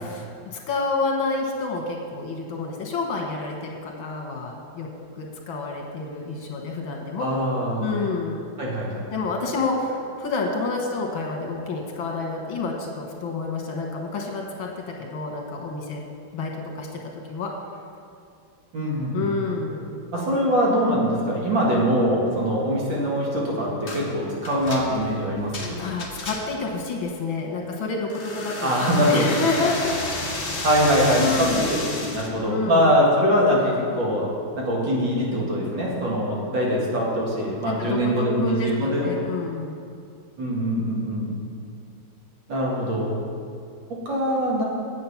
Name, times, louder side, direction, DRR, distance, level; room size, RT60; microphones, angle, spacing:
voice 1, 0.0-4.9 5.2-7.3 7.8-8.5 9.1-16.0 16.3-16.5 16.8-16.9 17.3-17.5 19.1-20.0 25.8-30.0 31.2-31.7 32.4-32.8 37.6-39.8, left 3 dB, 80° left, 1 dB, 2.1 m, -29 dB
voice 2, 7.2-7.9 8.6-9.0 18.7-19.2 20.1-25.8 28.6-29.3 30.6-34.3 34.5-39.2 40.4-41.3 42.5-43.1 43.9-44.6, equal, 70° right, -4 dB, 2.6 m, -23 dB
sound 1, 23.9-24.1 24.4-26.7 28.1-32.3, left 2 dB, 35° left, 1.1 m, -32 dB
8.5 x 8.0 x 5.8 m, 2.4 s
omnidirectional pair, 2.2 m